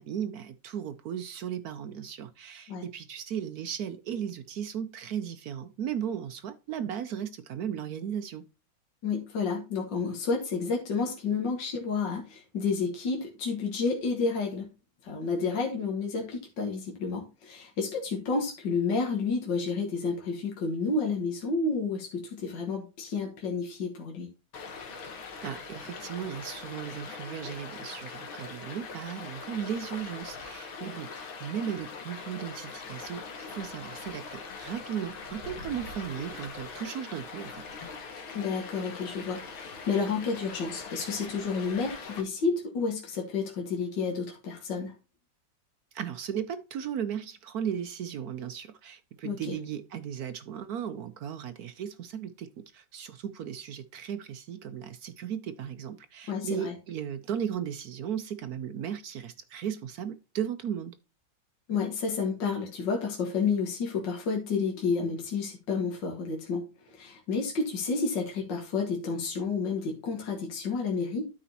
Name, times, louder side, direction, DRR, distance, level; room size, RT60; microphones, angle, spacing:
voice 1, 0.0-8.4 25.4-37.6 45.9-61.0, right 9 dB, 70° right, 0.9 m, -36 dB
voice 2, 9.0-14.7 15.0-24.3 38.3-44.9 49.2-49.6 56.3-56.7 61.7-66.6 66.9-71.2, left 4 dB, 65° left, 2.2 m, -30 dB
Stream, 24.5-42.2, left 4 dB, 90° left, 2.3 m, -42 dB
12.5 x 5.1 x 2.8 m
omnidirectional pair, 2.1 m